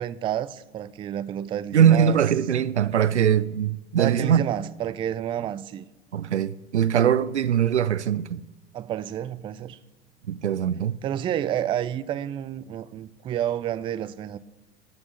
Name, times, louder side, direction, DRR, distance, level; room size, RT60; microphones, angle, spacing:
voice 1, 0.0-2.2 4.0-5.9 8.7-9.8 11.0-14.4, right 11 dB, 15° right, 0.3 m, -29 dB
voice 2, 1.7-4.4 6.1-8.4 10.3-11.0, right 9 dB, 85° right, 0.5 m, -21 dB
14.0 x 6.1 x 7.8 m
figure-of-eight pair, 85°, 34 cm